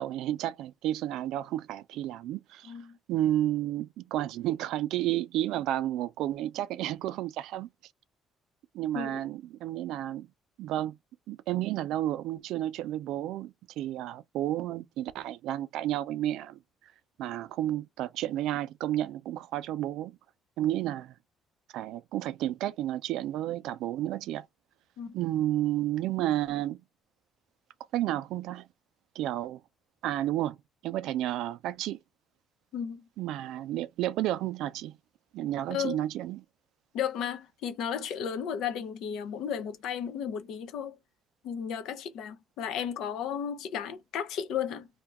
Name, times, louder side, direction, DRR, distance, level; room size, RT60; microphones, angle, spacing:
voice 1, 0.0-2.7 3.1-7.7 8.7-10.3 10.6-11.0 11.3-16.6 17.2-20.2 20.6-21.1 21.7-24.5 25.1-26.8 27.9-28.7 29.2-29.6 30.0-30.6 30.8-32.0 33.2-35.0 35.3-36.4, right 13 dB, 80° right, 0.3 m, -31 dB
voice 2, 2.7-3.0 8.9-9.2 25.0-25.1 32.7-33.0 35.7-36.0 36.9-41.0 41.4-44.9, left 8 dB, 75° left, 0.6 m, -34 dB
2.7 x 2.2 x 3.4 m
cardioid pair, 115°, 0 cm